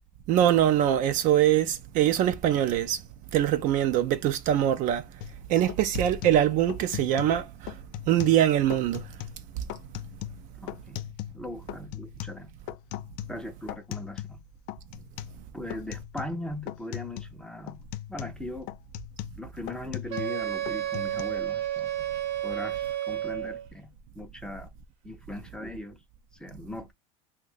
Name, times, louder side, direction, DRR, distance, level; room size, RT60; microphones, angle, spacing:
voice 1, 0.3-3.0 3.3-5.0 5.5-7.7 8.1-9.1, right 11 dB, 45° right, 0.4 m, -23 dB
sound 1, 5.2-5.4 5.7-7.4 7.7-8.4 8.7-9.4 9.7-11.4 11.7-14.4 14.7-15.4 15.7-16.4 16.7-17.4 17.7-20.4 20.7-21.2, left 15 dB, 55° left, 0.4 m, -39 dB
voice 2, 10.6-11.0 11.3-12.6 13.3-14.4 15.5-17.8 18.1-18.7 19.4-22.1 22.4-24.7 25.0-26.0 26.4-26.9, left 1 dB, 5° left, 0.5 m, -39 dB
Wind instrument woodwind instrument, 20.1-23.7, right 12 dB, 70° right, 0.9 m, -31 dB
2.6 x 2.2 x 3.7 m
supercardioid pair, 115°, 18 cm